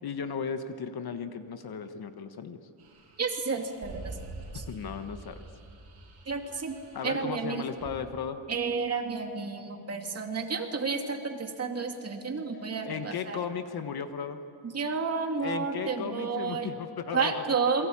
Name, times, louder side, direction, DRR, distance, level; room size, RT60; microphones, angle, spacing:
voice 1, 0.0-2.6 4.5-5.4 6.9-8.4 12.9-14.4 15.4-17.4, left 6 dB, 50° left, 9 dB, 1.3 m, -35 dB
sound 1, 2.8-8.0, right 3 dB, 50° right, 7.2 m, -46 dB
voice 2, 3.2-4.2 4.5-4.6 6.3-7.6 8.5-13.4 14.6-16.7 17.1-17.9, right 4 dB, 30° right, 3 dB, 2.5 m, -31 dB
28.5 x 23.0 x 8.7 m, 2.7 s
cardioid pair, 170°, 48 cm